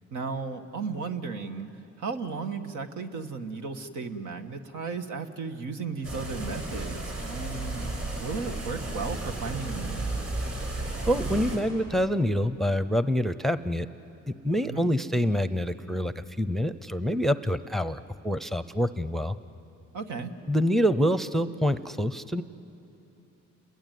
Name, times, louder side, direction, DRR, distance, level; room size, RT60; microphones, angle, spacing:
voice 1, 0.1-10.1 14.6-14.9 19.9-20.4, right 4 dB, 80° right, 6 dB, 1.7 m, -35 dB
sound 1, 6.0-11.6, right 2 dB, 55° right, 7.5 m, -33 dB
voice 2, 11.1-13.9 14.4-19.4 20.5-22.4, equal, ahead, 13 dB, 0.7 m, -26 dB
29.5 x 21.5 x 9.4 m, 2.9 s
cardioid pair, 90°, 30 cm